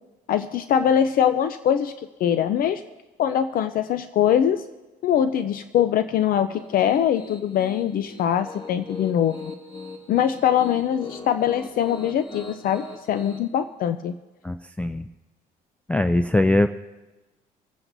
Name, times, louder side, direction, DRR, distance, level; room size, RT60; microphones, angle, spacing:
voice 1, 0.3-2.8 3.2-4.6 5.0-9.5 10.1-14.1, left 9 dB, 60° left, 11 dB, 0.5 m, -22 dB
Piano, 6.5-13.4, left 3 dB, 25° left, 1.2 m, -40 dB
voice 2, 14.4-15.1 15.9-16.7, left 1 dB, 10° left, 9 dB, 0.4 m, -21 dB
25.5 x 9.0 x 2.7 m, 1.1 s
cardioid pair, 110°, 17 cm